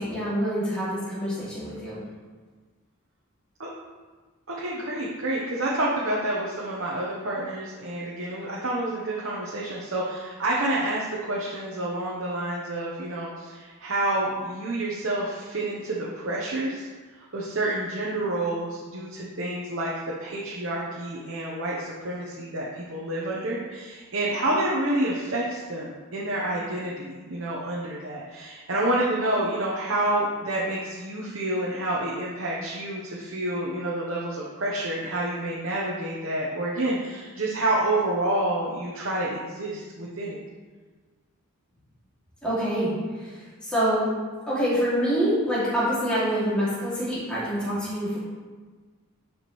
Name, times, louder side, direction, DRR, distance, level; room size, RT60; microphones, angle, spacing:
voice 1, 0.0-2.0 42.4-44.1 44.5-48.2, equal, 5° left, -11 dB, 2.5 m, -26 dB
voice 2, 4.5-16.9 17.1-19.9 20.2-40.4, right 1 dB, 60° right, -5 dB, 1.0 m, -28 dB
11.0 x 5.0 x 3.2 m, 1.4 s
head